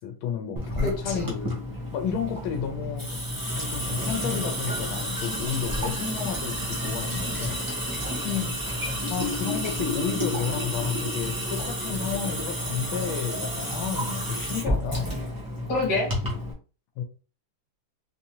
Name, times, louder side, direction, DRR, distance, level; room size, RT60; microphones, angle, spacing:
voice 1, 0.0-1.5 1.9-7.7 9.1-15.2 17.0-17.1, left 7 dB, 90° left, 5 dB, 1.5 m, -32 dB
Water tap faucet / Sink (filling or washing) / Drip, 0.6-16.5, equal, 20° right, 0.5 m, -30 dB
voice 2, 0.8-1.3 8.2-8.5 15.7-16.1, left 3 dB, 60° left, 0 dB, 1.7 m, -27 dB
3.9 x 2.7 x 2.8 m, 0.35 s
omnidirectional pair, 2.1 m